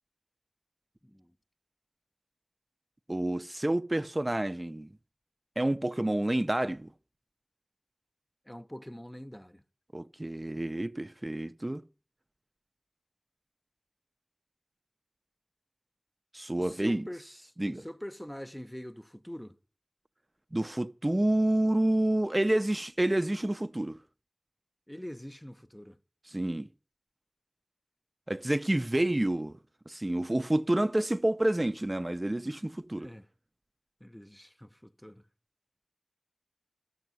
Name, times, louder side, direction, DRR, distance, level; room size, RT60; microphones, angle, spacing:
voice 1, 1.0-1.3 8.4-9.6 16.6-17.4 17.7-19.6 24.9-26.0 33.0-33.3 34.0-35.2, equal, 10° left, 0.8 m, -44 dB
voice 2, 3.1-4.9 5.6-6.9 9.9-11.8 16.3-17.0 17.6-17.8 20.5-24.0 26.3-26.7 28.3-29.5 29.9-33.1, right 1 dB, 40° right, 0.6 m, -29 dB
13.5 x 7.2 x 9.2 m
wide cardioid pair, 40°, 0 cm